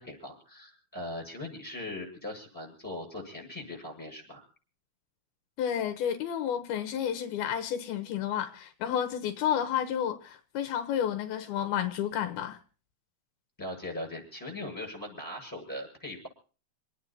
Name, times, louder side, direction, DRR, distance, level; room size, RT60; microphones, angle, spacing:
voice 1, 0.0-4.5 13.6-16.3, left 1 dB, 5° left, 7.4 m, -40 dB
voice 2, 5.6-12.6, left 9 dB, 80° left, 3.0 m, -31 dB
28.5 x 9.5 x 4.3 m
omnidirectional pair, 4.4 m